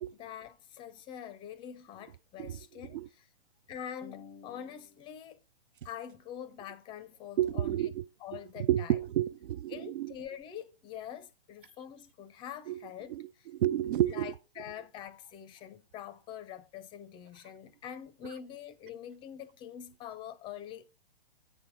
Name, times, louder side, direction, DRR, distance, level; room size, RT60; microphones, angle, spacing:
voice 1, 0.0-3.3 3.7-5.4 5.8-7.9 8.2-9.0 9.7-13.5 14.1-20.9, left 9 dB, 15° left, 0.5 m, -45 dB
voice 2, 7.4-8.0 8.6-10.1 12.7-12.8 13.1-14.3, right 12 dB, 55° right, 0.4 m, -30 dB
7.8 x 6.2 x 4.4 m
hypercardioid pair, 130°, 31 cm